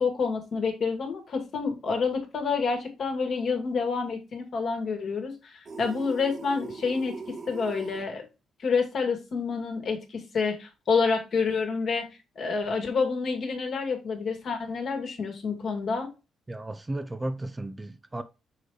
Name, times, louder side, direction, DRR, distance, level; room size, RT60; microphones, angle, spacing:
voice 1, 0.0-8.3 8.6-12.0 12.4-16.1, left 5 dB, 55° left, 2.1 m, -28 dB
sound 1, 5.7-8.1, right 4 dB, 45° right, 1.5 m, -40 dB
voice 2, 16.5-18.2, right 1 dB, 15° right, 0.5 m, -34 dB
6.5 x 3.2 x 4.7 m
cardioid pair, 90°, 0 cm